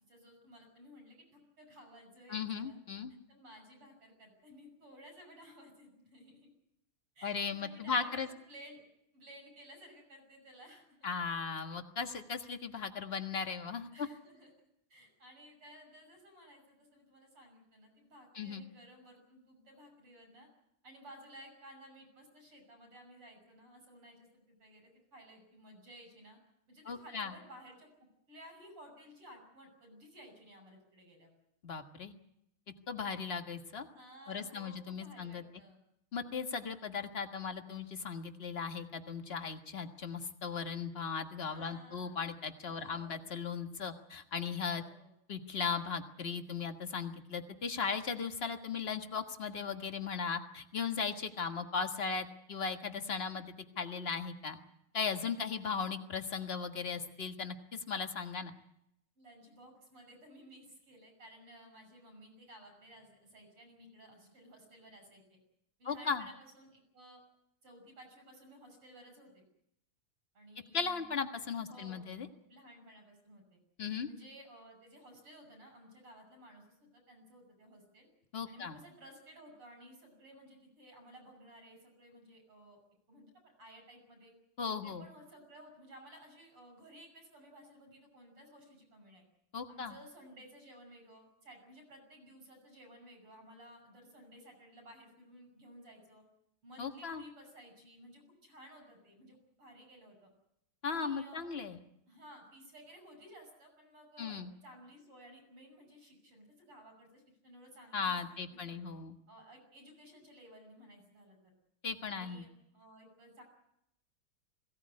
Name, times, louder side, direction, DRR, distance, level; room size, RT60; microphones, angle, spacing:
voice 1, 0.1-2.8 3.3-6.5 7.2-8.8 9.1-11.1 13.9-20.5 20.8-26.4 26.7-27.9 28.3-31.3 33.9-35.8 41.5-42.2 42.6-43.2 44.6-45.1 59.2-65.4 65.8-67.2 67.6-69.4 70.4-71.1 71.7-72.1 72.4-73.6 74.1-78.1 78.5-82.8 83.1-84.3 84.8-89.2 89.7-96.3 96.6-100.3 100.9-101.5 102.1-108.8 109.3-111.5 112.1-113.4, equal, 90° right, 5 dB, 6.9 m, -56 dB
voice 2, 2.3-3.1 7.2-8.3 11.0-13.9 18.3-18.6 26.8-27.3 31.6-32.1 32.9-33.9 34.3-35.4 36.1-44.8 45.3-53.4 53.8-54.6 54.9-58.5 65.8-66.3 70.7-72.3 73.8-74.1 78.3-78.8 84.6-85.0 89.5-90.0 96.8-97.2 100.8-101.8 104.2-104.5 107.9-109.1 111.8-112.4, left 5 dB, 30° left, 7 dB, 1.5 m, -37 dB
21.5 x 17.0 x 9.6 m, 0.78 s
omnidirectional pair, 2.4 m